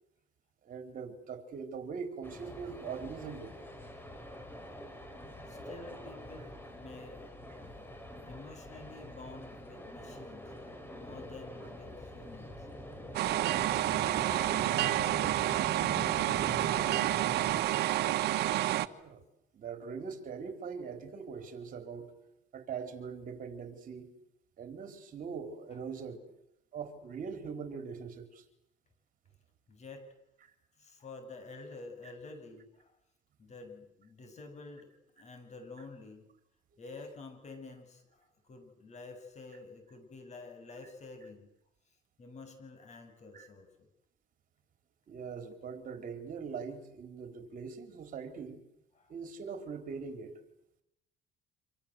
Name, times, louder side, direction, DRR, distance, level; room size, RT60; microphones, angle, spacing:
voice 1, 0.6-3.5 14.1-14.2 18.9-19.2 19.5-22.1 22.5-24.1 24.6-26.2 26.7-28.4 43.3-43.5 45.1-48.6 49.1-50.3, right 6 dB, 55° right, 7 dB, 4.4 m, -42 dB
sound 1, 2.2-17.6, left 1 dB, 15° left, 6.0 m, -45 dB
voice 2, 5.5-7.2 8.2-10.5 10.9-12.7 13.1-15.6 16.1-17.3 21.4-21.5 25.7-25.8 29.7-30.1 30.8-32.9 33.4-34.9 35.2-36.3 36.8-41.5 42.2-43.9 48.9-49.1, left 3 dB, 40° left, 7 dB, 7.7 m, -49 dB
sound 2, 13.1-18.9, right 14 dB, 75° right, 1.2 m, -29 dB
27.0 x 26.5 x 8.0 m, 0.81 s
cardioid pair, 110°, 17 cm